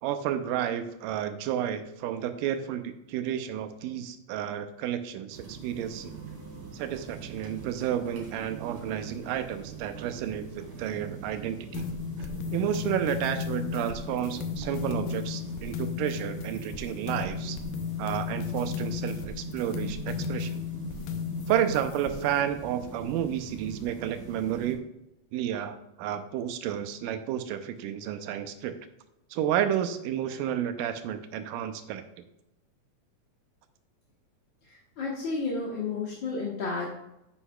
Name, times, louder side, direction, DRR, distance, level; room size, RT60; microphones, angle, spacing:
voice 1, 0.0-6.2 6.7-11.9 12.5-17.6 18.0-20.6 21.5-24.8 25.3-28.7 29.3-32.0, right 10 dB, 90° right, 9 dB, 2.3 m, -31 dB
sound 1, 5.3-24.7, right 5 dB, 65° right, 3.7 m, -43 dB
sound 2, 11.7-22.4, left 6 dB, 90° left, 2.5 m, -34 dB
voice 2, 34.6-36.9, left 4 dB, 50° left, -4 dB, 1.5 m, -32 dB
9.8 x 8.3 x 2.3 m, 0.88 s
omnidirectional pair, 3.7 m